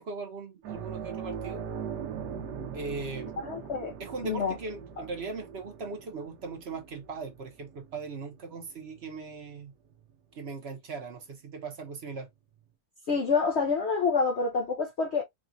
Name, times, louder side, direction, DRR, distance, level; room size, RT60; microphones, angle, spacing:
voice 1, 0.0-1.7 2.7-3.3 4.0-9.7 10.3-12.3, right 4 dB, 50° right, 0.9 m, -39 dB
sound 1, 0.6-9.6 9.9-10.1 12.2-12.3, right 7 dB, 90° right, 1.4 m, -41 dB
voice 2, 3.4-3.9 4.2-4.5 13.1-15.2, left 5 dB, 55° left, 0.7 m, -27 dB
5.0 x 2.4 x 2.6 m
omnidirectional pair, 1.8 m